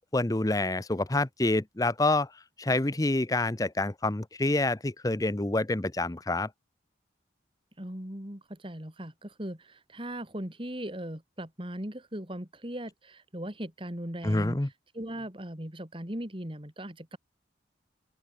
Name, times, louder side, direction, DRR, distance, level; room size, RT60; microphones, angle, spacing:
voice 1, 0.1-2.3 2.6-6.5 14.2-14.7, left 2 dB, 20° left, 0.7 m, -27 dB
voice 2, 7.8-14.6 14.9-17.2, right 1 dB, 30° right, 3.3 m, -38 dB
open air
head